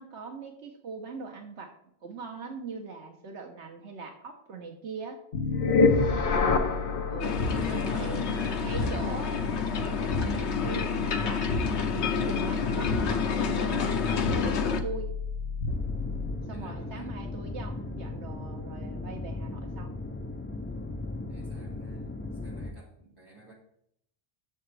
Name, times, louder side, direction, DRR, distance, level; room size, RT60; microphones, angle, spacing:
voice 1, 0.0-1.7 2.0-5.2 7.1-7.4 7.7-8.3 8.6-9.4 9.7-11.7 11.9-15.1 16.5-19.9, right 4 dB, 75° right, 3 dB, 1.3 m, -41 dB
sound 1, 5.3-16.5, left 4 dB, 55° left, 0.9 m, -29 dB
voice 2, 5.9-6.3 7.5-9.0 16.5-17.2 21.3-23.5, equal, 20° right, -4 dB, 3.1 m, -45 dB
sound 2, 7.2-14.8, left 5 dB, 70° left, 1.2 m, -29 dB
sound 3, 15.7-22.7, left 2 dB, 15° left, 0.4 m, -37 dB
11.5 x 7.0 x 3.3 m, 0.71 s
omnidirectional pair, 1.2 m